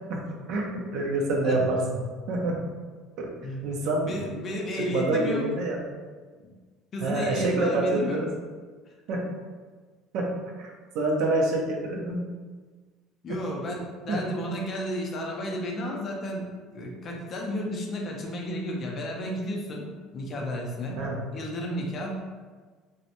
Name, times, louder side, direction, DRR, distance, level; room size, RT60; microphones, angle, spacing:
voice 1, 0.5-2.0 2.3-2.6 3.2-3.3 3.6-4.2 4.8-5.8 7.0-8.3 9.1-9.3 10.1-10.7 10.9-12.2 13.3-13.4 14.1-14.2 21.0-21.2, right 2 dB, 60° right, 0 dB, 0.5 m, -27 dB
voice 2, 4.0-5.5 6.4-6.5 6.9-8.2 13.2-16.5 16.7-21.0 21.3-22.2, equal, 30° left, 0 dB, 0.4 m, -32 dB
2.8 x 2.0 x 2.5 m, 1.4 s
cardioid pair, 160°, 0 cm